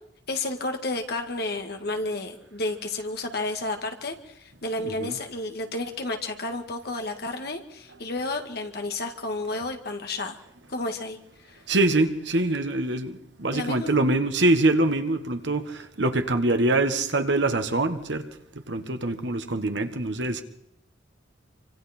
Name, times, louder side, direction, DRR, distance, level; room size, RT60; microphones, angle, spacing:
voice 1, 0.3-10.4 10.7-11.2 11.5-11.6 13.5-14.0, left 2 dB, 55° left, 2.1 m, -31 dB
voice 2, 4.8-5.2 11.7-18.2 18.7-20.4, right 2 dB, 70° right, 1.6 m, -24 dB
27.0 x 25.0 x 4.5 m
head